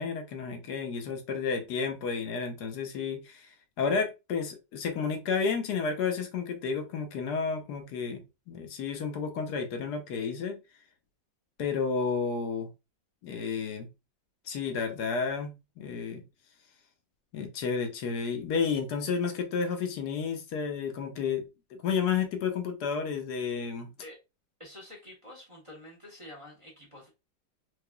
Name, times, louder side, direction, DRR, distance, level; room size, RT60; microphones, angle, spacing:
voice 1, 0.0-3.5 3.8-10.6 11.6-12.7 13.2-13.9 14.5-16.2 17.3-21.5 21.8-23.9, left 5 dB, 70° left, 1.2 m, -31 dB
voice 2, 24.6-27.1, left 1 dB, 25° right, 0.7 m, -48 dB
4.8 x 2.4 x 2.2 m
omnidirectional pair, 2.0 m